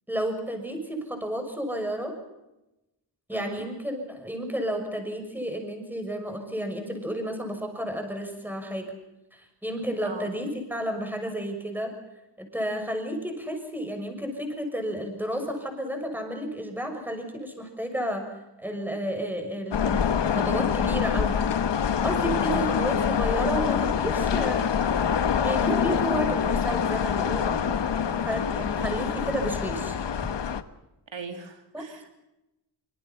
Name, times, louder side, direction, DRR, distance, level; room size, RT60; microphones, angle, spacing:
voice 1, 0.1-2.1 3.3-8.8 9.3-11.9 12.4-18.3 18.6-21.3 22.0-24.6 25.4-30.0 31.7-31.8, equal, 5° right, 4 dB, 6.2 m, -31 dB
voice 2, 3.3-3.7 10.0-10.4 22.4-22.8 28.7-29.3 31.1-32.1, right 4 dB, 75° right, 5 dB, 3.1 m, -40 dB
sound 1, 19.7-30.6, left 7 dB, 70° left, 1.3 m, -25 dB
26.0 x 25.5 x 5.8 m, 0.94 s
wide cardioid pair, 130°, 45 cm